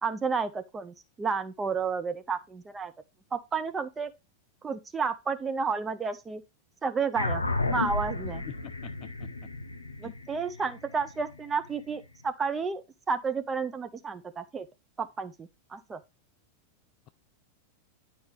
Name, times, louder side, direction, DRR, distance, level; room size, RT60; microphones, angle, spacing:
voice 1, 0.0-2.9 3.3-4.1 4.6-6.4 6.8-7.4 7.7-8.4 10.0-14.7 15.0-16.0, right 5 dB, 15° right, 0.7 m, -31 dB
sound 1, 7.1-11.9, left 2 dB, 80° left, 0.7 m, -33 dB
voice 2, 8.5-9.3 10.0-10.1, left 14 dB, 40° left, 0.3 m, -45 dB
9.5 x 4.5 x 3.3 m
figure-of-eight pair, 90°, 0 cm